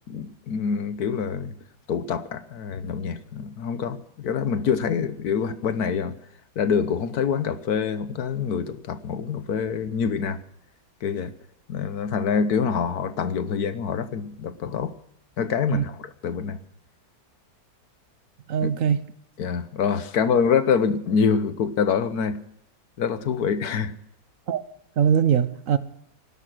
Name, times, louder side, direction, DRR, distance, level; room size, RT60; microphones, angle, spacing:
voice 1, 0.1-1.5 1.9-6.1 6.5-10.4 11.0-11.3 11.7-14.9 15.4-16.6 18.6-18.7 19.4-22.4 23.0-24.0, left 6 dB, 60° left, 1.5 m, -25 dB
voice 2, 18.5-19.0 24.5-24.6 25.0-25.8, right 8 dB, 55° right, 1.2 m, -21 dB
18.0 x 11.5 x 6.2 m
omnidirectional pair, 1.9 m